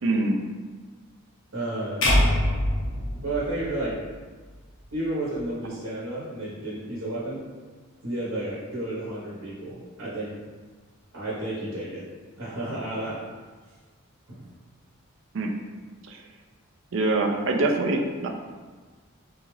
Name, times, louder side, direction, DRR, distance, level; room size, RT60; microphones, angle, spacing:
voice 1, 0.0-0.4 15.3-15.5 16.1-16.2 16.9-18.3, right 2 dB, 60° right, 2 dB, 0.4 m, -24 dB
voice 2, 1.5-2.1 3.2-4.0 4.9-7.4 8.0-10.3 11.1-12.0 12.4-13.2 14.3-14.5, right 1 dB, 80° right, -8 dB, 1.0 m, -31 dB
sound 1, 2.0-4.3, left 1 dB, 65° left, 0.8 m, -24 dB
3.8 x 2.4 x 3.1 m, 1.4 s
head